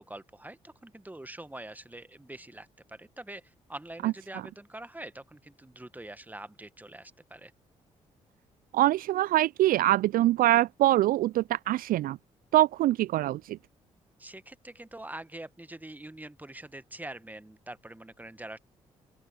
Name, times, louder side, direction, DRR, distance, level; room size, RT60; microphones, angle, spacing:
voice 1, 0.0-7.5 14.2-18.6, right 1 dB, 10° right, 1.5 m, -44 dB
voice 2, 8.7-12.2 12.5-13.6, right 15 dB, 60° right, 0.4 m, -24 dB
open air
hypercardioid pair, 45°, 17 cm